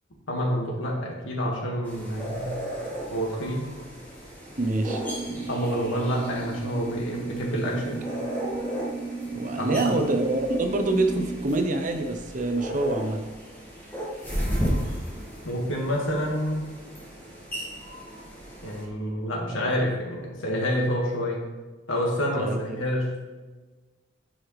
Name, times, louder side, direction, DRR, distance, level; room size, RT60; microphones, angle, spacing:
voice 1, 0.3-2.6 3.1-3.7 5.5-8.0 9.6-9.9 15.4-16.7 18.6-21.5 21.9-23.1, equal, 80° left, -1 dB, 1.8 m, -28 dB
sound 1, 1.8-18.8, equal, 10° left, 1.8 m, -35 dB
voice 2, 4.6-5.0 9.3-13.2 22.4-22.8, right 2 dB, 40° right, 5 dB, 0.7 m, -26 dB
sound 2, 4.8-11.4, right 3 dB, 50° left, 2.3 m, -35 dB
10.0 x 4.8 x 3.2 m, 1.3 s
head